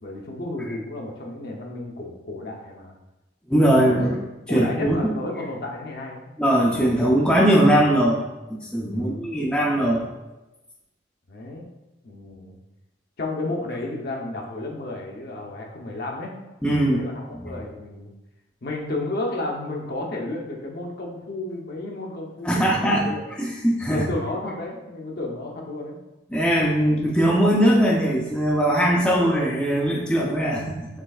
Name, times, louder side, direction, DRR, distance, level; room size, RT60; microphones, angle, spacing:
voice 1, 0.0-2.9 3.6-4.1 4.5-6.3 8.9-9.2 11.3-11.7 12.0-12.6 13.2-16.4 16.8-18.1 18.6-23.2 23.9-26.0, left 2 dB, 55° left, -1 dB, 0.8 m, -32 dB
voice 2, 3.5-4.2 4.5-5.1 6.4-8.2 8.5-10.1 16.6-17.0 22.4-23.1 23.4-24.1 26.3-30.9, right 1 dB, 5° left, -4 dB, 0.5 m, -20 dB
6.0 x 3.3 x 2.4 m, 1.0 s
head